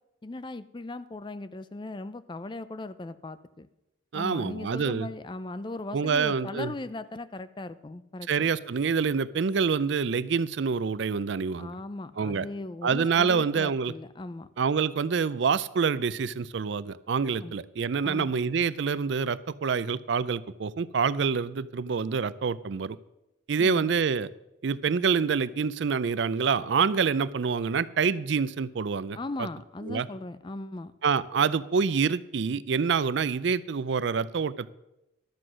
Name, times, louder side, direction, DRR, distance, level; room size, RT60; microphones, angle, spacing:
voice 1, 0.2-3.7 4.1-8.5 11.6-14.5 17.4-17.5 18.0-18.3 23.6-23.9 29.1-30.9, left 2 dB, 25° left, 14 dB, 0.4 m, -38 dB
voice 2, 4.1-5.1 5.9-6.7 8.3-11.7 12.2-12.5 12.8-13.9 14.6-23.0 23.5-24.3 24.6-29.2 29.8-30.1 31.0-34.7, right 5 dB, 60° right, 18 dB, 0.4 m, -26 dB
12.0 x 7.8 x 6.2 m, 0.94 s
head